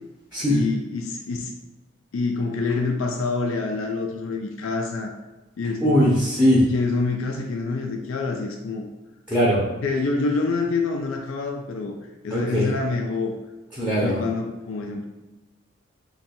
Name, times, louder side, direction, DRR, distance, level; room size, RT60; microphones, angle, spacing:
voice 1, 0.5-1.5 2.1-5.1 5.6-6.2 6.7-8.9 9.8-11.9 12.2-13.3 14.0-15.1, left 3 dB, 80° left, 2 dB, 0.4 m, -26 dB
voice 2, 5.8-6.6 9.3-9.6 12.3-12.7 13.8-14.2, equal, 5° right, -6 dB, 0.6 m, -20 dB
2.6 x 2.3 x 4.1 m, 1.1 s
head